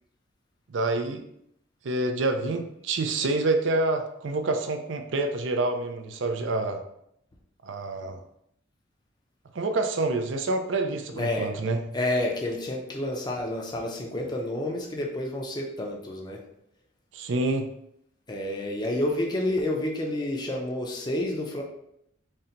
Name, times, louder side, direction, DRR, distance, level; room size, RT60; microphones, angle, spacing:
voice 1, 0.7-1.2 1.8-6.8 7.6-8.2 9.5-11.8 17.1-17.7, right 2 dB, 65° right, 6 dB, 0.5 m, -27 dB
voice 2, 11.1-11.5 11.9-16.4 18.3-21.6, left 1 dB, 20° left, 0 dB, 0.5 m, -29 dB
4.2 x 2.2 x 3.8 m, 0.75 s
head